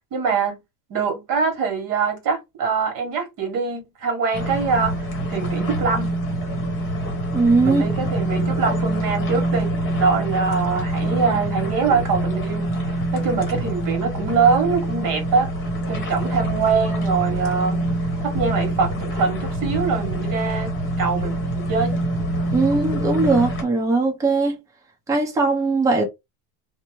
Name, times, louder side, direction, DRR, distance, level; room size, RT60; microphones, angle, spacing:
voice 1, 0.1-0.6 0.9-6.1 7.6-9.7 10.0-15.5 15.9-17.8 18.2-21.3 21.6-22.0, right 5 dB, 45° right, 1.4 m, -23 dB
sound 1, 4.3-23.6, right 1 dB, 25° left, 1.0 m, -25 dB
voice 2, 7.3-7.8 22.5-24.6 25.1-26.0, right 3 dB, 5° right, 0.6 m, -19 dB
2.8 x 2.1 x 3.1 m
supercardioid pair, 140°, 47 cm